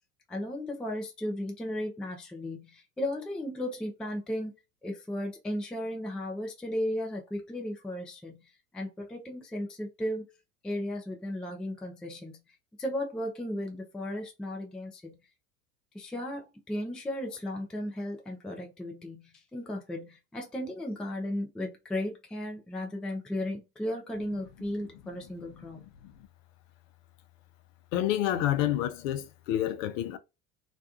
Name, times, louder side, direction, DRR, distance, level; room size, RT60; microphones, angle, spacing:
voice 1, 0.3-4.5 4.8-8.4 8.7-10.2 10.6-12.4 12.8-15.1 15.9-25.8, left 1 dB, ahead, 0.3 m, -35 dB
voice 2, 27.9-30.2, left 12 dB, 55° left, 0.5 m, -28 dB
2.5 x 2.2 x 2.3 m
figure-of-eight pair, 75°, 46 cm